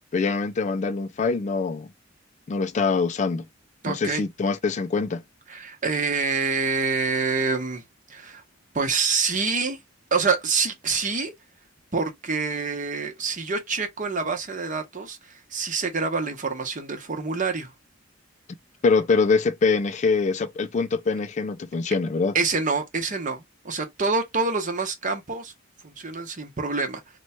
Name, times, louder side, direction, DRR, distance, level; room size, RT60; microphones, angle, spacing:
voice 1, 0.1-1.9 2.5-3.5 3.9-5.2 18.8-22.3, left 4 dB, 35° left, 0.3 m, -24 dB
voice 2, 3.8-4.2 5.5-7.8 8.1-8.4 8.7-9.8 10.1-11.3 11.9-17.7 22.3-25.5 25.8-27.0, right 4 dB, 40° right, 0.9 m, -26 dB
3.0 x 2.2 x 4.2 m
head